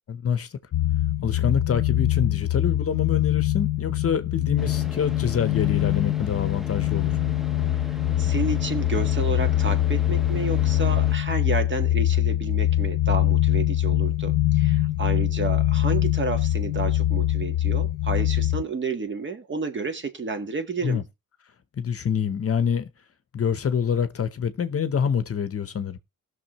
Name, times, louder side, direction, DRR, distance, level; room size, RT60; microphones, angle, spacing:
voice 1, 0.1-0.6 1.2-7.2 20.8-21.0 21.7-22.9 23.3-26.0, left 7 dB, 45° left, 0.8 m, -26 dB
sound 1, 0.7-18.6, left 13 dB, 80° left, 0.6 m, -23 dB
Car / Idling, 4.6-11.2, left 1 dB, ahead, 0.7 m, -40 dB
voice 2, 8.2-21.0, right 4 dB, 35° right, 1.5 m, -31 dB
19.0 x 6.4 x 3.0 m
wide cardioid pair, 160°, 33 cm